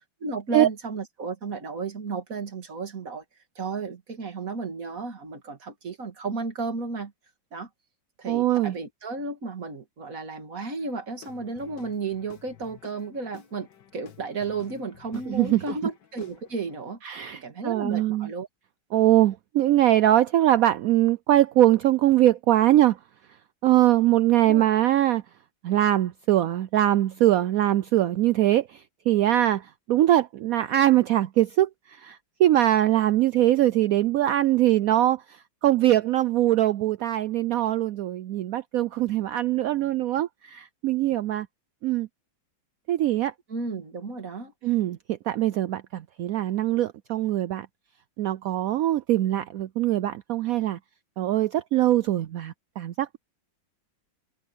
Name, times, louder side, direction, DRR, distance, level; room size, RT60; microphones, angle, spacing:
voice 1, 0.2-3.2 3.6-7.1 7.5-7.7 8.2-13.7 13.9-18.5 24.4-24.6 43.5-44.5, right 4 dB, 45° right, 2.7 m, -33 dB
voice 2, 8.3-8.7 15.3-15.6 17.0-18.3 18.9-23.0 23.6-25.2 25.6-41.5 41.8-42.1 42.9-43.3 44.6-47.7 48.2-50.8 51.2-53.2, right 13 dB, 85° right, 0.7 m, -22 dB
Guitar / Drum, 11.2-16.8, left 9 dB, 65° left, 2.0 m, -51 dB
omnidirectional pair, 2.0 m